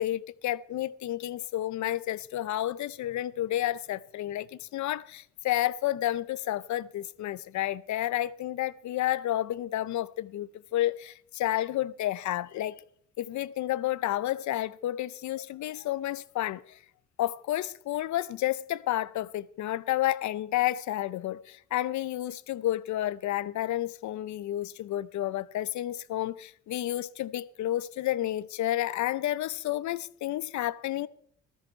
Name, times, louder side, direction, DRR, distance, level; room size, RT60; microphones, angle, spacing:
voice 1, 0.0-12.8 13.2-16.6 17.2-31.1, left 13 dB, 70° left, 0.6 m, -31 dB
14.5 x 13.0 x 4.3 m
cardioid pair, 90°, 30 cm